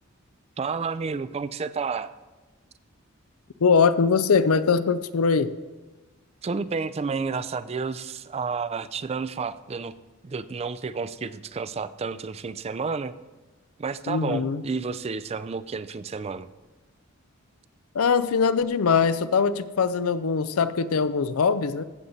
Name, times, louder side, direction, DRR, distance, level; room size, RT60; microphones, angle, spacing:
voice 1, 0.6-2.1 6.4-9.9 10.2-13.1 13.8-16.5, right 5 dB, 30° right, 15 dB, 0.4 m, -31 dB
voice 2, 3.6-5.6 14.1-14.6 17.9-21.8, left 5 dB, 90° left, 14 dB, 0.5 m, -22 dB
14.5 x 7.9 x 4.1 m, 1.2 s
head